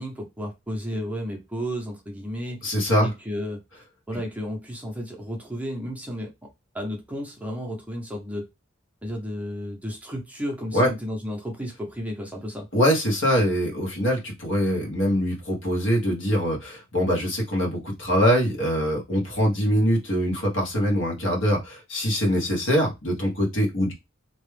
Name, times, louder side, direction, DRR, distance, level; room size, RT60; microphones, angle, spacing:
voice 1, 0.0-3.6 4.1-6.3 6.7-8.5 9.0-12.7, equal, 5° right, 0.7 m, -33 dB
voice 2, 2.6-3.1 10.7-10.9 12.7-23.9, equal, 70° left, 1.3 m, -23 dB
2.9 x 2.3 x 3.2 m
head